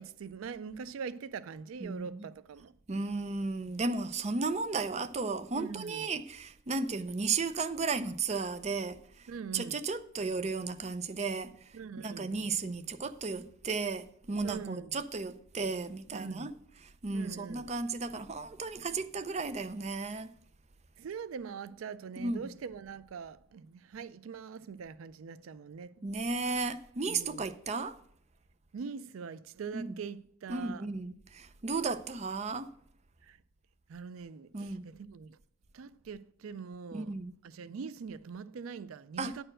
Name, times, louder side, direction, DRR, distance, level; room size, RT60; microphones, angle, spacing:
voice 1, 0.0-2.7 5.5-6.0 9.3-9.8 11.7-12.4 14.4-14.9 16.1-16.6 17.1-17.7 21.0-26.1 27.1-27.5 28.7-30.9 33.2-33.4 33.9-35.4 35.7-37.2 37.4-39.4, right 6 dB, 90° right, 0.4 m, -43 dB
voice 2, 1.8-2.3 2.9-16.5 16.8-20.3 22.2-22.4 26.0-28.0 29.7-30.0 30.5-32.7 34.5-34.8 36.9-37.3 39.2-39.4, right 4 dB, 35° right, 0.5 m, -34 dB
9.9 x 4.5 x 7.6 m
head